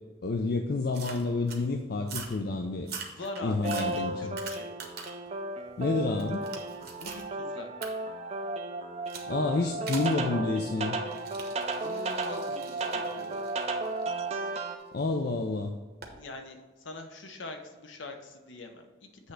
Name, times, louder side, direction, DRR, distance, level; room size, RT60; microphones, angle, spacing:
voice 1, 0.2-2.9 3.4-4.3 5.8-6.5 9.3-11.0 14.9-15.7, left 3 dB, 50° left, 4 dB, 0.4 m, -29 dB
sound 1, 0.9-1.6 2.0-2.4 2.8-5.3 5.7-7.3 7.8-7.9 9.1-9.3 9.9-10.2 11.1-15.0 16.0-16.2, right 5 dB, 50° right, 1.0 m, -43 dB
voice 2, 3.0-4.7 7.0-7.7 11.8-13.5 16.2-19.3, left 2 dB, 70° left, 5 dB, 0.8 m, -43 dB
sound 2, 3.6-14.8, right 2 dB, 30° right, 0.5 m, -34 dB
8.1 x 3.3 x 6.4 m, 1.3 s
head